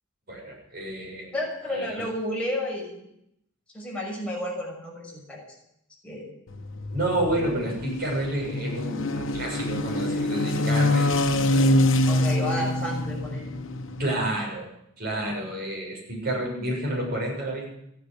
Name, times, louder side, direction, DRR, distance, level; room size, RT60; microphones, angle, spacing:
voice 1, 0.3-1.3 1.7-2.0 6.9-11.8 12.5-12.6 14.0-14.7 15.0-17.7, right 1 dB, 50° right, -2 dB, 7.0 m, -30 dB
voice 2, 1.3-2.9 3.7-5.4 6.0-6.3 12.1-13.5 15.2-15.3, left 1 dB, 5° left, -3 dB, 6.0 m, -31 dB
sound 1, 6.5-14.1, left 1 dB, 85° left, 1.1 m, -25 dB
14.5 x 10.0 x 8.5 m, 0.78 s
head